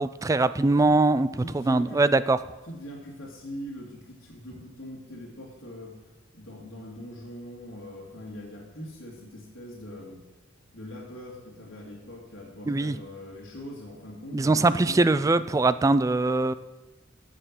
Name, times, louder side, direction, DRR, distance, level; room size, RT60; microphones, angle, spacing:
voice 1, 0.0-1.3 1.5-2.4 12.7-13.0 14.3-16.5, right 2 dB, 15° right, 14 dB, 0.3 m, -22 dB
voice 2, 1.4-2.2 2.7-6.0 6.3-10.2 10.7-15.3, left 1 dB, 65° left, -7 dB, 2.4 m, -42 dB
10.0 x 6.8 x 7.6 m, 1.2 s
head